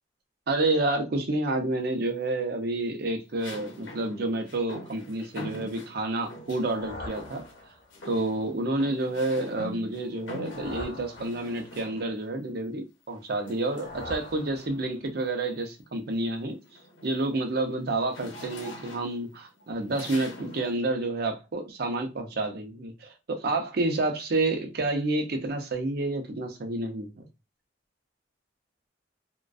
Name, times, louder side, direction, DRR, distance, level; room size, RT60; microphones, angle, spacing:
voice 1, 0.5-7.4 8.1-16.6 17.0-27.3, right 2 dB, 55° right, 0.5 m, -29 dB
sound 1, 1.5-2.1 3.4-6.7 7.1-7.6 7.9-12.3 13.5-14.9 15.4-15.6 16.0-20.8, left 1 dB, 80° left, 0.7 m, -44 dB
sound 2, 6.2-8.1 10.0-11.9 13.3-15.2, left 1 dB, 50° left, 0.8 m, -43 dB
2.4 x 2.2 x 2.3 m
head